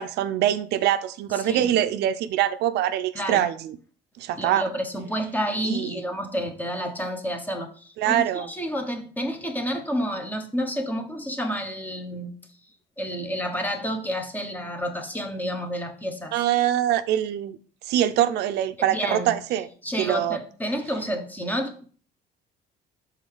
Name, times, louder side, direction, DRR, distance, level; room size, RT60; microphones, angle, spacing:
voice 1, 0.0-3.8 4.2-4.6 5.6-6.0 8.0-8.5 16.3-17.6 17.9-19.7 20.0-20.4, right 11 dB, 80° right, 0.5 m, -24 dB
voice 2, 1.3-1.7 3.1-3.5 4.4-12.3 13.0-16.3 18.9-19.3 19.8-21.9, equal, 10° left, 1.1 m, -30 dB
5.4 x 3.7 x 4.9 m
cardioid pair, 110°, 17 cm